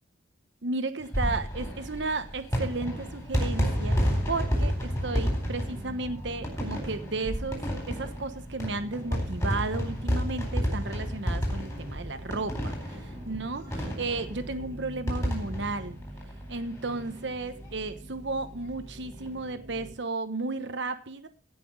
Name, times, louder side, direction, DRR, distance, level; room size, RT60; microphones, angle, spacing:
voice 1, 0.6-4.0 4.3-16.0 16.5-21.3, right 3 dB, 65° right, 10 dB, 1.1 m, -34 dB
sound 1, 1.0-17.0 17.3-17.4 17.6-17.7 19.0-19.3, equal, 15° left, 4.1 m, -31 dB
sound 2, 3.9-19.9, right 1 dB, 35° right, 1.6 m, -45 dB
16.5 x 6.0 x 6.4 m, 0.43 s
head